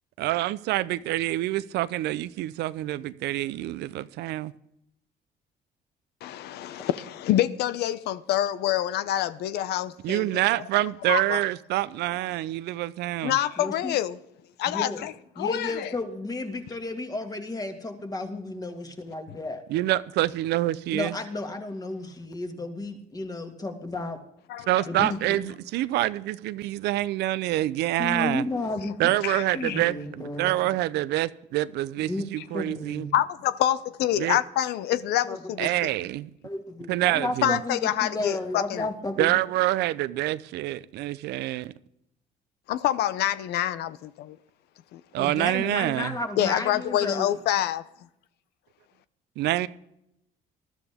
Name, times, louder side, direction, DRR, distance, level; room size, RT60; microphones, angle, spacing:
voice 1, 0.2-4.5 10.0-13.4 19.7-21.1 24.7-28.4 29.0-33.1 34.2-34.4 35.6-36.3 36.9-37.6 39.2-41.7 45.1-46.1 49.4-49.7, right 15 dB, 80° right, 0.6 m, -26 dB
voice 2, 6.2-10.3 11.1-11.4 13.2-14.2 14.6-15.1 15.4-15.9 24.5-25.1 29.2-29.8 33.1-35.7 37.4-38.8 42.7-44.4 44.9-45.0 46.4-47.8, left 12 dB, 80° left, 0.7 m, -26 dB
voice 3, 13.6-14.0 14.7-15.1 15.4-19.6 20.9-24.2 24.9-25.5 28.0-29.0 29.5-30.7 32.1-33.1 35.2-35.4 36.0-36.1 36.4-39.4 45.2-47.4, left 2 dB, 20° left, 2.1 m, -33 dB
20.0 x 12.5 x 3.6 m
cardioid pair, 110°, 17 cm